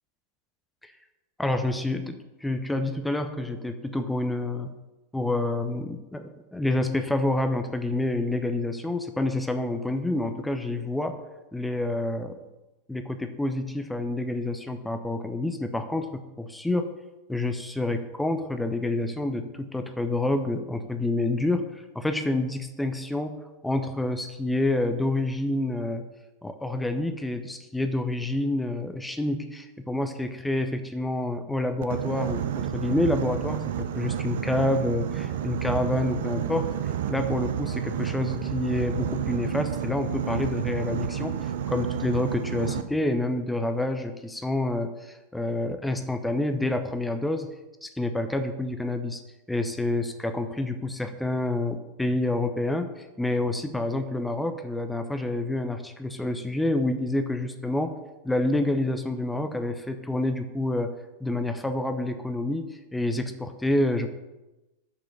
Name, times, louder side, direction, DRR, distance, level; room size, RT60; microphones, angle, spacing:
voice 1, 1.4-4.7 5.1-11.2 11.5-12.4 12.9-16.9 17.3-26.0 26.4-41.4 41.7-47.5 47.8-49.2 49.5-58.0 58.2-60.9 61.2-64.1, left 2 dB, 5° left, 7 dB, 0.5 m, -28 dB
Boat Water vehicle, 31.8-42.8, right 9 dB, 55° right, 0.5 m, -30 dB
5.7 x 4.9 x 6.3 m, 1.0 s
figure-of-eight pair, 90°, 0 cm